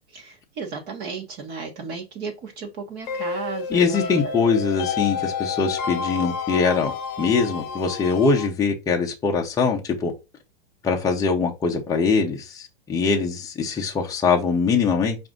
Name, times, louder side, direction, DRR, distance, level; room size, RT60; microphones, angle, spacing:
voice 1, 0.1-4.6, right 4 dB, 30° right, 1.0 m, -35 dB
sound 1, 3.1-8.5, left 6 dB, 45° left, 0.7 m, -30 dB
voice 2, 3.7-6.9 7.2-10.1 10.8-15.2, left 5 dB, 10° left, 0.7 m, -22 dB
4.8 x 2.6 x 3.6 m
hypercardioid pair, 130°, 31 cm